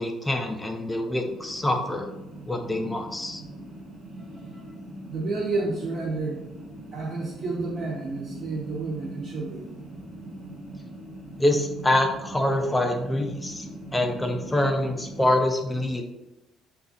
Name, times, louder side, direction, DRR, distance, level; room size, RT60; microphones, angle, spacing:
voice 1, 0.0-2.1 2.5-3.4 11.4-13.7 13.9-16.0, left 1 dB, 10° left, 4 dB, 0.4 m, -25 dB
sound 1, 1.2-15.3, right 1 dB, 15° right, 0.9 m, -41 dB
voice 2, 4.2-4.7 5.1-6.4 6.9-9.7, right 3 dB, 40° right, -5 dB, 0.7 m, -30 dB
3.9 x 2.3 x 4.0 m, 0.91 s
cardioid pair, 165°, 0 cm